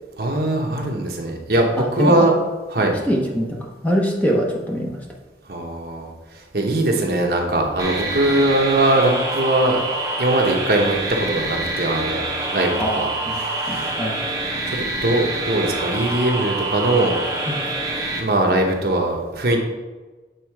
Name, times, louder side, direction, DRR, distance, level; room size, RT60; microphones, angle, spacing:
voice 1, 0.2-2.3 2.7-2.9 5.5-9.8 10.2-12.2 12.5-14.0 14.7-17.2 17.4-17.5 17.9-19.6, right 1 dB, 60° right, 1 dB, 1.0 m, -21 dB
voice 2, 3.1-5.0 12.8-13.4 13.7-14.2 17.5-17.6, equal, 10° left, -1 dB, 0.8 m, -23 dB
sound 1, 7.8-18.2, right 2 dB, 20° right, 1.0 m, -26 dB
8.1 x 3.7 x 4.6 m, 1.3 s
head